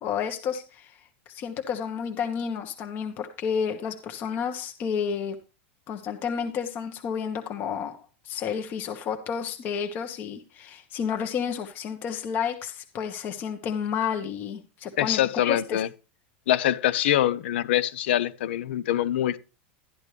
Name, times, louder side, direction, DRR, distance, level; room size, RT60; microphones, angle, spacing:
voice 1, 0.0-1.0 1.3-5.4 5.9-8.0 8.2-15.8, left 7 dB, 35° left, 1.2 m, -31 dB
voice 2, 15.0-15.9 16.5-19.4, left 12 dB, 80° left, 0.9 m, -24 dB
12.5 x 10.5 x 3.3 m
supercardioid pair, 160°, 6 cm